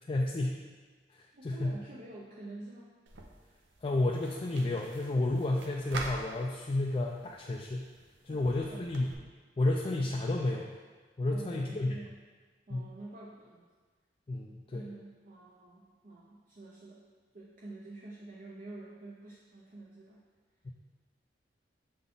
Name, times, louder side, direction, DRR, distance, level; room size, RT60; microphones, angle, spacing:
voice 1, 0.1-0.6 1.1-1.8 3.8-7.9 8.2-9.1 9.6-10.7 11.2-12.0 12.7-12.8 14.3-14.9 20.6-20.7, left 2 dB, 30° left, -1 dB, 0.4 m, -31 dB
voice 2, 1.3-2.9 8.3-8.9 11.3-12.1 12.7-13.7 14.4-17.0 17.3-20.2, right 2 dB, 45° right, -4 dB, 0.6 m, -48 dB
sound 1, 3.1-9.1, right 2 dB, 80° right, 0.7 m, -46 dB
6.6 x 4.0 x 3.7 m, 1.4 s
head